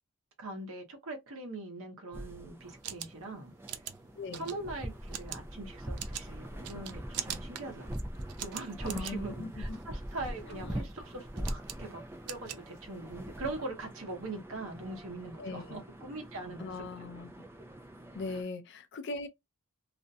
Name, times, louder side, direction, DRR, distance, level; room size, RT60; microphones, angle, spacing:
voice 1, 0.4-3.5 4.3-7.9 8.4-16.9, right 2 dB, 65° right, 0.8 m, -42 dB
sound 1, 2.1-18.4, equal, 10° right, 0.3 m, -43 dB
sound 2, 2.6-13.3, right 11 dB, 90° right, 0.4 m, -44 dB
voice 2, 4.1-4.5 8.9-9.8 10.4-10.8 15.4-15.8 16.6-17.3 18.1-19.3, left 3 dB, 55° left, 0.5 m, -40 dB
2.5 x 2.1 x 2.5 m
head